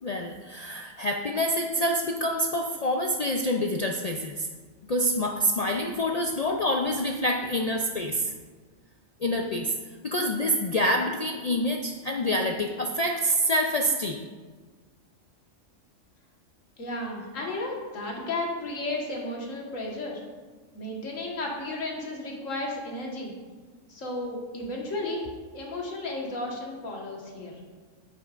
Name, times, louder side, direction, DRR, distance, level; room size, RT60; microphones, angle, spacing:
voice 1, 0.0-4.5 4.8-8.3 9.2-9.7 10.0-14.2, equal, 65° left, 2 dB, 0.4 m, -27 dB
voice 2, 16.8-20.2 20.7-23.3 23.9-27.6, left 2 dB, 85° left, -2 dB, 1.8 m, -33 dB
9.3 x 8.5 x 2.5 m, 1.4 s
omnidirectional pair, 1.3 m